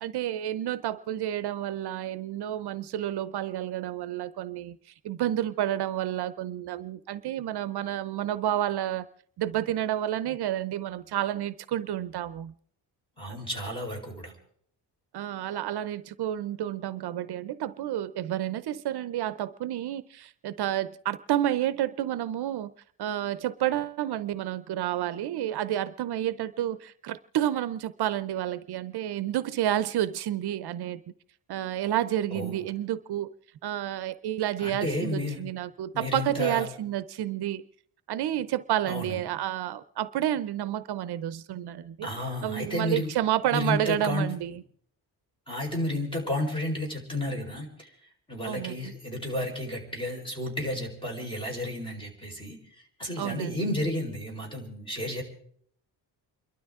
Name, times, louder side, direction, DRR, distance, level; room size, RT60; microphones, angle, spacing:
voice 1, 0.0-4.8 5.0-9.1 9.4-12.5 15.1-22.7 23.0-31.0 31.5-33.3 33.6-37.6 38.1-42.1 42.4-44.6 48.4-48.9 53.2-53.6, right 12 dB, 70° right, 0.7 m, -30 dB
voice 2, 13.2-14.3 32.3-32.6 34.6-35.4 35.9-36.6 38.9-39.2 42.0-43.1 43.5-44.3 45.5-47.9 48.3-52.6 53.0-55.2, left 1 dB, 10° left, 4.5 m, -32 dB
29.0 x 12.5 x 3.6 m
cardioid pair, 140°, 41 cm